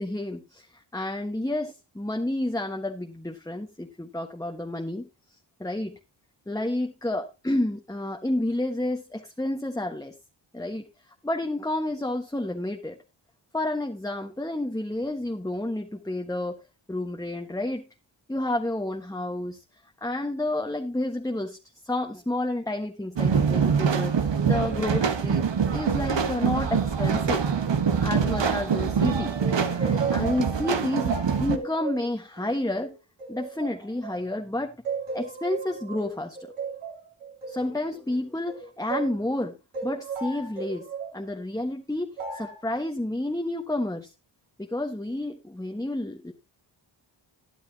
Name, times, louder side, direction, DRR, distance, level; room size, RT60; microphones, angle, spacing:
voice 1, 0.0-5.1 5.6-5.9 6.5-10.1 10.5-13.0 13.5-16.6 16.9-17.8 18.3-19.6 20.0-21.6 21.8-27.4 28.0-29.3 30.1-33.0 33.3-34.8 35.1-36.5 37.5-39.6 39.8-40.9 41.1-44.1 44.6-46.3, left 1 dB, 5° left, 3 dB, 1.4 m, -30 dB
sound 1, 23.2-31.6, right 6 dB, 60° right, 1.4 m, -24 dB
sound 2, 29.4-34.4 34.8-39.2 39.7-41.2 42.2-42.6, right 4 dB, 85° right, 3.7 m, -35 dB
13.0 x 10.5 x 2.9 m, 0.25 s
cardioid pair, 50°, 49 cm